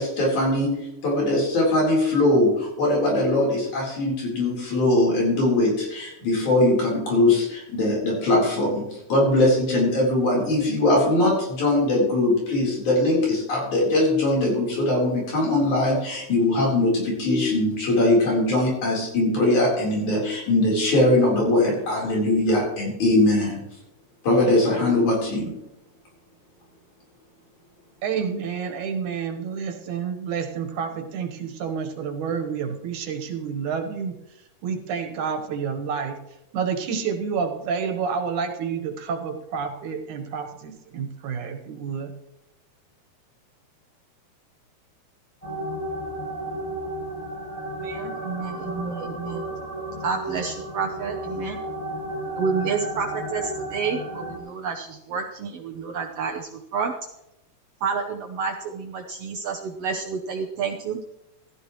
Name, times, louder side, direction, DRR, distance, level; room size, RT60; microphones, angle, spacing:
voice 1, 0.0-23.6 24.2-25.5, left 1 dB, 85° left, -3 dB, 5.5 m, -21 dB
voice 2, 28.0-34.1 34.6-36.2 36.5-42.1, right 6 dB, 90° right, 5 dB, 2.8 m, -29 dB
sound 1, 45.4-54.4, right 1 dB, 15° left, 1.4 m, -33 dB
voice 3, 47.8-49.4 50.0-51.6 52.4-56.9 57.8-61.0, right 5 dB, 65° right, 2 dB, 1.7 m, -29 dB
16.0 x 13.0 x 3.1 m, 0.86 s
omnidirectional pair, 3.3 m